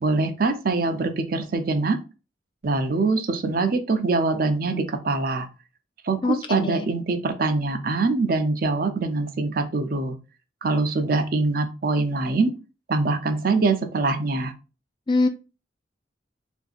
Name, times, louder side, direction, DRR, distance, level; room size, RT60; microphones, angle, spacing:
voice 1, 0.0-2.0 2.6-5.5 6.0-10.2 10.6-12.5 12.9-14.5, right 3 dB, 50° right, 7 dB, 0.5 m, -23 dB
voice 2, 6.2-6.9 15.1-15.3, left 3 dB, 25° left, 5 dB, 0.3 m, -23 dB
3.7 x 2.6 x 2.4 m, 0.31 s
head